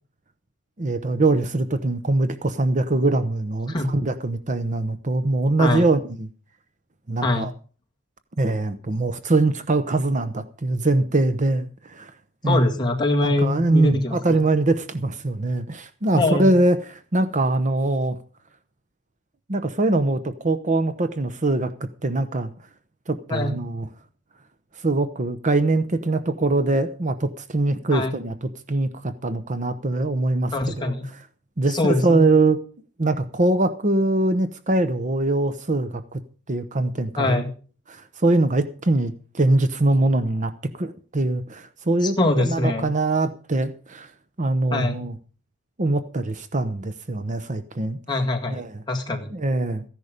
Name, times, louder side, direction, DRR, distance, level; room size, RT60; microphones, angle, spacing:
voice 1, 0.8-6.3 7.1-7.5 8.4-12.1 12.4-12.7 13.2-18.2 19.5-22.5 23.1-23.9 24.7-30.9 31.6-32.6 33.0-36.2 36.5-37.4 37.9-44.1 44.4-45.1 45.8-48.0 48.5-48.8 49.3-49.8, right 2 dB, 35° right, 11 dB, 0.8 m, -23 dB
voice 2, 12.5-14.4 16.1-16.5 23.3-23.5 27.9-28.1 30.5-31.1 31.7-32.3 37.2-37.5 42.0-42.9 44.7-45.0 48.1-48.6 48.9-49.3, left 2 dB, 20° left, 1 dB, 1.9 m, -23 dB
15.0 x 11.0 x 5.1 m, 0.39 s
head